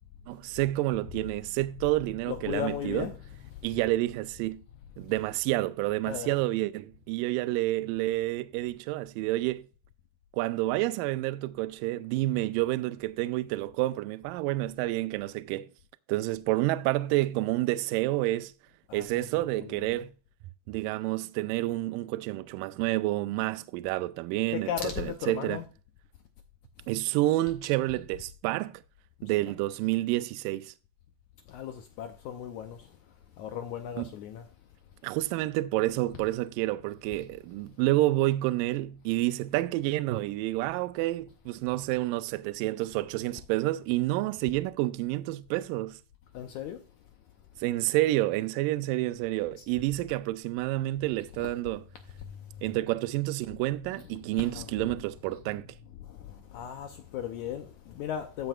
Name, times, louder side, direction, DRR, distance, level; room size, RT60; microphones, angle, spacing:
voice 1, 0.3-3.1 3.6-4.6 5.0-9.7 10.3-15.7 16.1-18.5 18.9-20.1 20.7-25.6 26.9-28.8 29.2-30.7 34.0-34.1 35.0-46.0 47.6-51.8 52.6-55.7, right 17 dB, 80° right, 2.0 m, -29 dB
voice 2, 2.3-3.2 6.1-6.4 18.9-20.0 24.5-25.7 31.5-32.8 33.4-34.4 46.3-46.8 51.4-51.5 54.0-54.9 56.0-58.5, left 9 dB, 85° left, 1.7 m, -37 dB
13.5 x 7.9 x 2.4 m
omnidirectional pair, 4.4 m